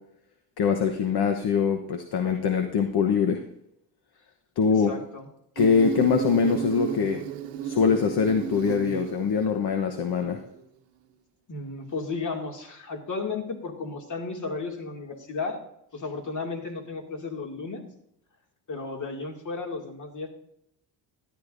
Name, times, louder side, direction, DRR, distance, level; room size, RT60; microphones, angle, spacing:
voice 1, 0.6-3.4 4.6-4.9 5.6-7.2 7.6-10.4, left 6 dB, 60° left, 5 dB, 1.1 m, -23 dB
voice 2, 4.9-5.3 11.5-15.6 15.9-17.8 18.7-20.3, left 4 dB, 45° left, 2 dB, 2.3 m, -34 dB
Insect, 5.6-10.5, right 9 dB, 80° right, 1.0 m, -34 dB
13.0 x 10.5 x 2.6 m, 0.77 s
cardioid pair, 90°, 43 cm